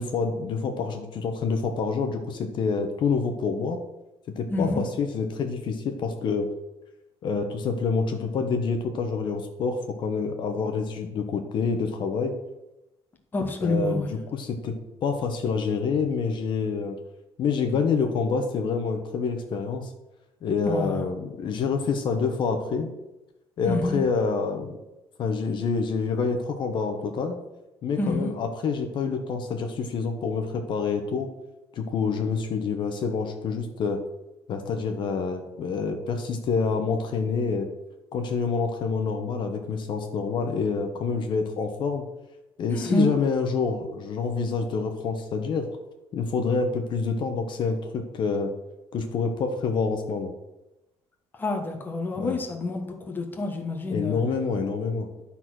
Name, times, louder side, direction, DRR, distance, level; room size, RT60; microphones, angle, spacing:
voice 1, 0.0-3.8 4.4-6.5 7.2-12.3 13.6-14.7 15.0-17.0 17.4-19.9 20.4-22.9 23.6-24.8 25.2-27.4 27.8-31.3 31.7-34.0 34.5-37.7 38.1-42.0 42.6-45.7 46.1-48.5 48.9-50.3 52.2-52.4 53.9-55.1, left 5 dB, 45° left, 5 dB, 1.0 m, -27 dB
voice 2, 4.5-4.8 13.3-14.1 20.6-21.0 23.6-24.0 28.0-28.3 42.7-43.1 51.4-54.2, left 2 dB, 20° left, 2 dB, 1.2 m, -27 dB
11.5 x 4.2 x 6.2 m, 0.97 s
cardioid pair, 175°, 11 cm